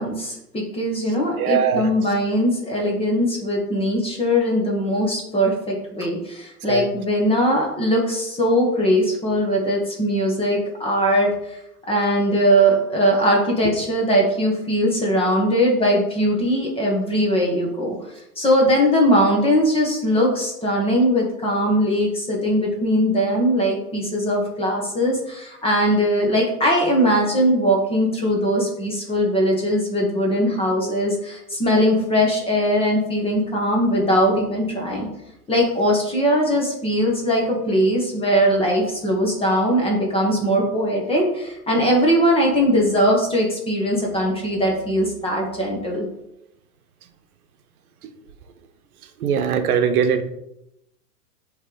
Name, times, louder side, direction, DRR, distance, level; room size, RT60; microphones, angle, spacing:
voice 1, 0.0-11.6 11.9-17.9 18.4-35.1 35.5-46.1, equal, 10° left, -1 dB, 1.2 m, -20 dB
voice 2, 1.4-1.9 6.7-6.9 49.2-50.2, right 7 dB, 65° right, 8 dB, 1.0 m, -20 dB
7.9 x 3.3 x 3.9 m, 0.84 s
hypercardioid pair, 125°, 46 cm